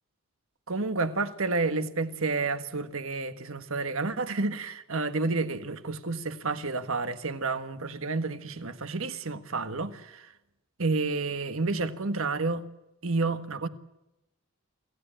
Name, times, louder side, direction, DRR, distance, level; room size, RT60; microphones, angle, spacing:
voice 1, 0.7-10.3 10.8-12.6 13.0-13.7, right 3 dB, 65° right, 1.5 m, -30 dB
27.0 x 16.0 x 9.0 m
head